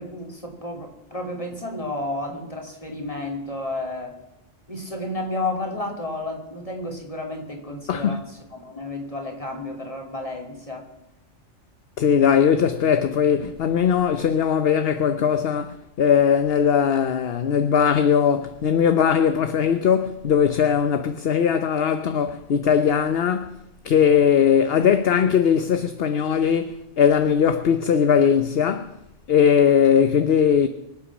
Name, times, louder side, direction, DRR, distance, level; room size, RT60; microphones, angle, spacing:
voice 1, 0.0-4.1 4.7-10.9, left 2 dB, 30° left, 3.2 m, -32 dB
voice 2, 7.9-8.2 12.0-23.6 23.8-28.9 29.3-30.7, left 7 dB, 60° left, 1.0 m, -19 dB
24.5 x 8.4 x 6.2 m
omnidirectional pair, 1.2 m